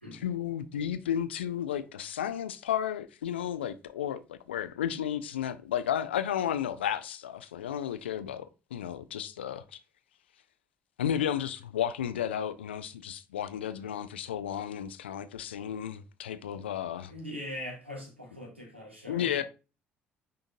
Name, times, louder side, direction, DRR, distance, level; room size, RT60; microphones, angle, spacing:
voice 1, 0.1-8.5 8.7-9.8 11.0-17.1 19.1-19.4, left 10 dB, 75° left, 0.5 m, -33 dB
voice 2, 17.1-19.4, left 1 dB, 85° right, 1.7 m, -41 dB
9.3 x 3.9 x 2.6 m
figure-of-eight pair, 50°, 6 cm